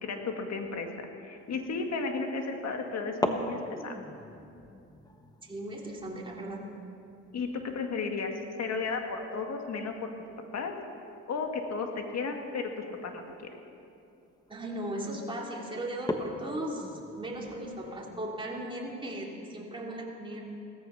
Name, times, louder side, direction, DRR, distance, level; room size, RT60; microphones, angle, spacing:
voice 1, 0.0-3.6 3.8-4.0 7.3-8.3 8.6-10.1 10.5-10.7 11.3-13.2, left 4 dB, 60° left, 4 dB, 2.0 m, -34 dB
sound 1, 1.6-1.9 3.0-9.5 9.8-9.9 10.3-10.6 11.6-11.8 12.4-12.5 13.1-13.2 13.5-13.8 14.5-14.8 15.2-15.3 15.9-18.2, left 1 dB, 15° left, 1.3 m, -39 dB
voice 2, 5.4-6.6 14.5-20.5, right 1 dB, 15° right, -3 dB, 3.2 m, -37 dB
17.5 x 14.0 x 5.8 m, 2.7 s
cardioid pair, 90°, 30 cm